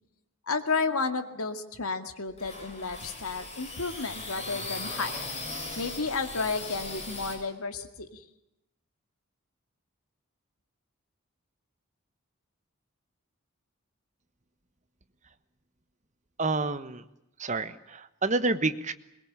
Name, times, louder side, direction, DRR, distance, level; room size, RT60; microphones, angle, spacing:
voice 1, 0.5-5.1 5.8-8.2, left 4 dB, 90° left, 8 dB, 2.2 m, -32 dB
sound 1, 2.3-7.3, left 2 dB, 30° left, 6.6 m, -38 dB
voice 2, 16.4-17.0 17.4-18.9, right 3 dB, 35° right, 12 dB, 1.2 m, -28 dB
22.5 x 21.0 x 8.8 m, 0.85 s
head